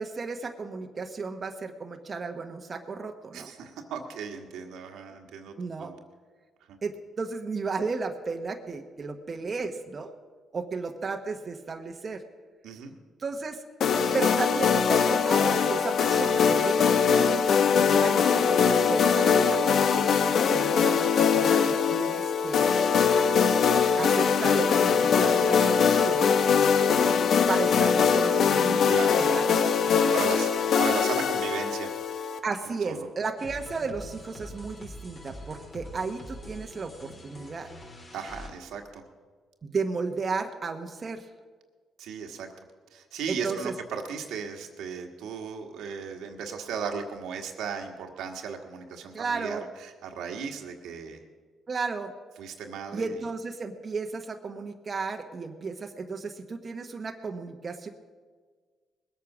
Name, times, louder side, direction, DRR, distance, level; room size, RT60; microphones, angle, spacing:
voice 1, 0.0-3.5 5.6-5.9 6.8-10.1 10.5-12.2 13.2-13.6 14.1-17.4 17.7-22.7 24.0-26.3 27.5-29.4 29.9-30.1 32.4-37.7 39.6-41.3 43.3-43.7 49.1-49.6 51.7-52.1 52.9-57.9, right 4 dB, 40° right, 4 dB, 1.0 m, -34 dB
voice 2, 3.3-6.0 6.7-6.8 12.6-12.9 28.9-29.2 30.1-31.9 32.6-33.1 38.1-39.0 42.0-42.5 42.9-51.2 52.4-53.2, right 6 dB, 85° right, 3 dB, 1.6 m, -36 dB
sound 1, 13.8-32.4, left 6 dB, 65° left, 0.8 m, -22 dB
sound 2, 33.4-38.5, left 1 dB, 40° left, 3.8 m, -44 dB
20.5 x 8.4 x 6.1 m, 1.5 s
cardioid pair, 90°, 0 cm